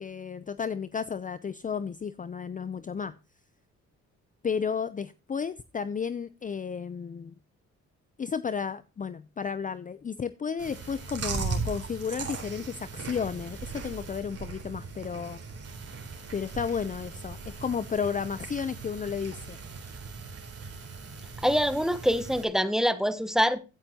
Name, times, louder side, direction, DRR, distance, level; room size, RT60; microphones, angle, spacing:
voice 1, 0.0-3.1 4.4-7.3 8.2-15.4 16.3-19.6, left 6 dB, 25° left, 0.5 m, -33 dB
Chewing mastication, 10.6-22.4, right 4 dB, 50° right, 3.9 m, -38 dB
voice 2, 21.4-23.6, equal, ahead, 1.1 m, -25 dB
15.5 x 9.3 x 2.9 m
cardioid pair, 90°, 30 cm